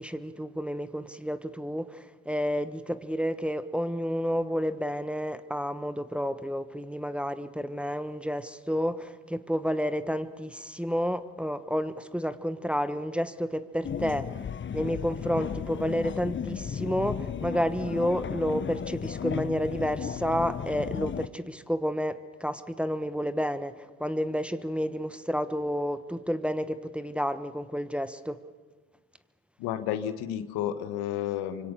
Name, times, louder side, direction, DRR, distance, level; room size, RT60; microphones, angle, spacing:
voice 1, 0.0-14.3 14.7-23.7 24.0-28.4, equal, 5° right, 10 dB, 1.2 m, -30 dB
sound 1, 13.8-21.3, left 7 dB, 30° left, 0.8 m, -34 dB
voice 2, 29.6-31.7, left 11 dB, 75° left, 11 dB, 1.4 m, -31 dB
25.0 x 24.5 x 6.9 m, 1.4 s
hypercardioid pair, 55°, 38 cm